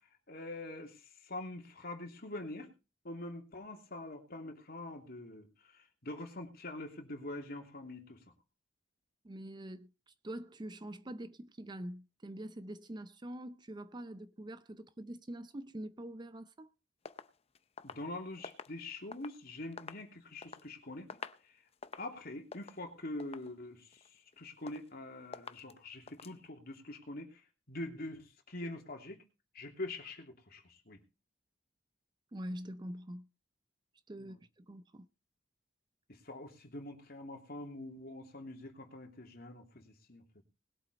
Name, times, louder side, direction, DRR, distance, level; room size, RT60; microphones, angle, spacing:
voice 1, 0.3-2.7 3.0-8.2 17.8-21.5 22.0-29.2 29.5-31.0 34.2-34.4 36.1-40.4, left 2 dB, 55° left, 3.0 m, -45 dB
voice 2, 9.2-16.7 32.3-33.3 34.1-35.1, right 1 dB, 25° right, 0.5 m, -45 dB
sound 1, 17.1-19.4 19.7-20.7 21.0-21.5 21.7-22.2 22.5-22.8 23.2-23.6 23.9-24.4 24.7-25.0 25.3-25.7 26.1-26.4, left 5 dB, 35° left, 0.6 m, -48 dB
20.5 x 8.2 x 4.1 m
head